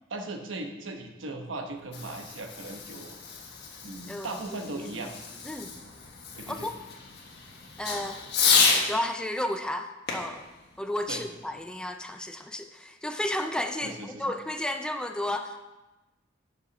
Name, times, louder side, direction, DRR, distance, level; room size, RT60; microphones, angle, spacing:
voice 1, 0.1-3.2 3.8-5.2 6.3-6.7 11.1-11.2 13.8-14.3, right 2 dB, 70° right, 4 dB, 1.0 m, -38 dB
Fireworks, 1.6-8.9 10.1-11.7, left 5 dB, 60° left, 1.4 m, -30 dB
voice 2, 4.1-4.9 5.4-5.7 6.5-6.7 7.8-8.2 8.9-10.4 10.8-15.6, left 1 dB, 5° left, 6 dB, 0.4 m, -33 dB
7.8 x 5.6 x 6.0 m, 1.1 s
head